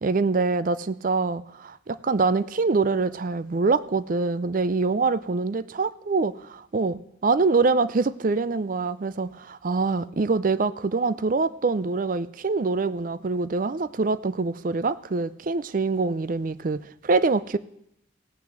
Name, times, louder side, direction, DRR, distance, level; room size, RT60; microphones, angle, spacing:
voice 1, 0.0-17.6, right 3 dB, 45° right, 16 dB, 0.5 m, -25 dB
17.0 x 6.0 x 7.5 m, 0.78 s
head